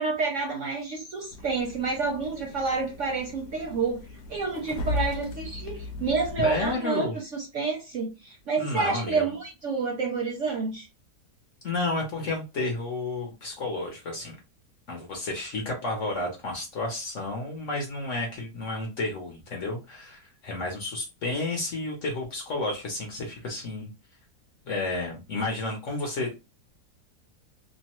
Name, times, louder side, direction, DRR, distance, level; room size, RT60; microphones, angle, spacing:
voice 1, 0.0-4.0 4.3-10.9, right 4 dB, 60° right, 1 dB, 0.8 m, -29 dB
sound 1, 1.3-6.8, left 2 dB, 75° left, 1.2 m, -37 dB
voice 2, 6.4-7.2 8.6-9.3 11.6-14.4 14.9-23.9 24.7-26.4, left 2 dB, 55° left, 1 dB, 0.9 m, -31 dB
3.0 x 2.1 x 2.9 m, 0.27 s
omnidirectional pair, 1.8 m